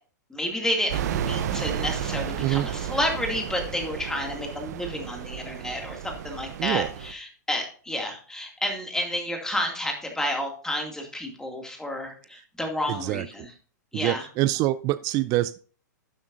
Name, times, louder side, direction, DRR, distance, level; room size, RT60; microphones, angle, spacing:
voice 1, 0.3-13.5 13.9-14.3, left 1 dB, 5° left, 2.4 m, -30 dB
sound 1, 0.9-7.1, right 9 dB, 60° right, 0.8 m, -32 dB
voice 2, 12.9-13.5 13.9-15.6, right 16 dB, 35° right, 0.4 m, -25 dB
12.0 x 7.3 x 2.6 m
hypercardioid pair, 115°, 10 cm